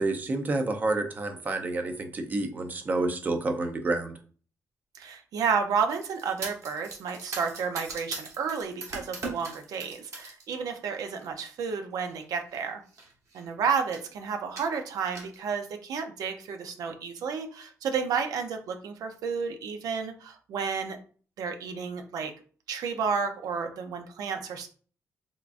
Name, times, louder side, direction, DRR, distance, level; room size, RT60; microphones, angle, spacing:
voice 1, 0.0-4.1, right 2 dB, 30° right, 5 dB, 0.5 m, -29 dB
voice 2, 4.9-12.8 13.3-21.0 21.4-22.3 22.7-24.7, right 6 dB, 85° right, 6 dB, 0.6 m, -31 dB
sound 1, 5.9-10.4 10.8-11.3 12.1-12.2 12.5-12.6 12.9-13.5 13.9-14.1 14.6-15.4, right 3 dB, 55° right, 1.1 m, -40 dB
3.6 x 3.4 x 2.5 m, 0.42 s
wide cardioid pair, 160°, 6 cm